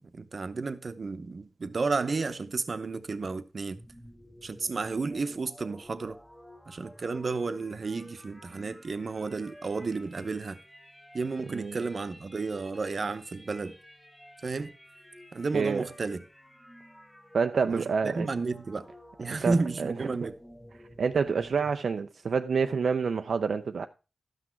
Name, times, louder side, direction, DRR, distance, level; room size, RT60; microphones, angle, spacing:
voice 1, 0.1-3.8 4.4-6.2 6.7-10.6 11.1-13.8 14.4-14.7 15.3-16.2 17.7-18.9 19.2-20.3, right 4 dB, 55° right, 0.9 m, -32 dB
sound 1, 3.6-21.8, equal, 5° left, 2.2 m, -52 dB
voice 2, 15.5-15.8 17.3-18.3 19.4-19.5 19.8-19.9 21.0-23.9, right 5 dB, 75° right, 0.5 m, -27 dB
12.5 x 6.2 x 4.5 m
wide cardioid pair, 80°, 0 cm